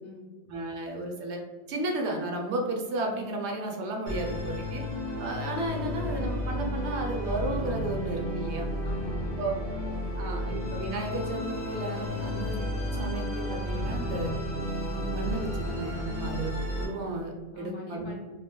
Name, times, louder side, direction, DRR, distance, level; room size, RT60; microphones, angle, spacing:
voice 1, 0.5-1.4 1.7-4.8 5.2-8.7 9.4-9.5 10.2-12.6 13.0-14.3 14.8-18.1, right 2 dB, 70° right, 1 dB, 0.8 m, -33 dB
Musical instrument, 4.1-16.9, left 1 dB, 15° left, 0.8 m, -32 dB
voice 2, 8.8-10.5 17.5-18.2, left 1 dB, 70° left, -2 dB, 1.1 m, -44 dB
2.8 x 2.1 x 2.9 m, 1.3 s
omnidirectional pair, 1.3 m